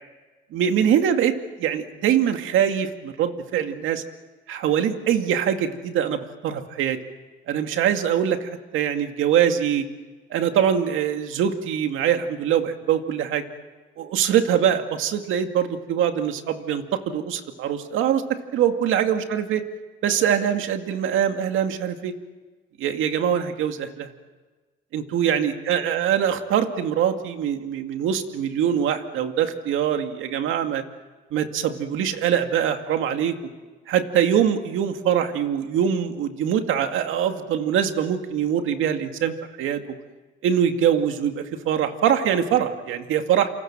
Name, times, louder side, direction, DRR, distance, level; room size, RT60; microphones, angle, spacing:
voice 1, 0.5-4.0 4.5-7.0 7.5-9.9 10.3-13.4 14.0-18.2 18.5-19.6 20.0-22.1 22.8-24.1 24.9-30.8 31.3-33.4 33.9-39.8 40.4-43.5, right 9 dB, 85° right, 6 dB, 2.3 m, -23 dB
28.5 x 27.0 x 7.5 m, 1.3 s
cardioid pair, 90°, 20 cm